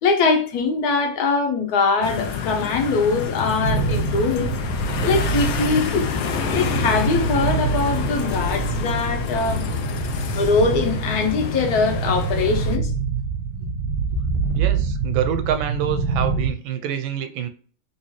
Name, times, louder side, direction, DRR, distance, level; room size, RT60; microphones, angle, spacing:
voice 1, 0.0-4.5 5.0-6.1 6.5-9.6 10.3-12.9, left 4 dB, 60° left, 1.2 m, -22 dB
sound 1, 2.0-12.8, left 7 dB, 80° left, 0.8 m, -28 dB
sound 2, 3.6-16.5, right 5 dB, 65° right, 1.0 m, -26 dB
voice 2, 14.5-17.5, right 9 dB, 85° right, 1.4 m, -26 dB
3.3 x 3.0 x 3.1 m
omnidirectional pair, 2.2 m